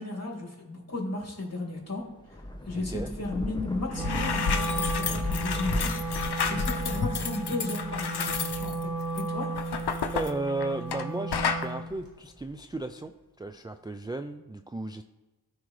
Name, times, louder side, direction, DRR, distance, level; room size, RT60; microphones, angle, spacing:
voice 1, 0.0-2.0 2.6-4.9 5.3-8.9 9.1-9.5, left 2 dB, 40° left, -2 dB, 2.8 m, -34 dB
Thunder / Rain, 2.0-10.9 11.4-12.8, left 1 dB, 10° left, 0.9 m, -38 dB
voice 2, 2.8-3.1 10.1-13.1 13.4-15.0, right 2 dB, 10° right, 7 dB, 0.3 m, -34 dB
sound 1, 3.6-3.7 3.9-11.1 11.3-11.7, left 6 dB, 85° left, 0.7 m, -31 dB
Wind instrument woodwind instrument, 3.9-11.9, right 2 dB, 65° right, 1.9 m, -34 dB
13.0 x 4.7 x 3.2 m, 1.2 s
wide cardioid pair, 45°, 38 cm